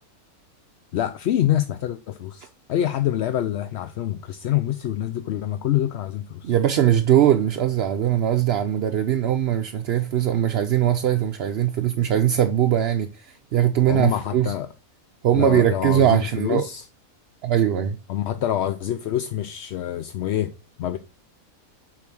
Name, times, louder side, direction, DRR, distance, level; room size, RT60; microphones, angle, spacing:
voice 1, 0.9-6.5 13.9-14.7 15.3-16.8 18.1-21.0, left 11 dB, 65° left, 0.7 m, -26 dB
voice 2, 6.4-14.5 15.2-16.6 17.4-18.0, right 10 dB, 60° right, 0.7 m, -21 dB
6.9 x 4.9 x 6.0 m
omnidirectional pair, 1.5 m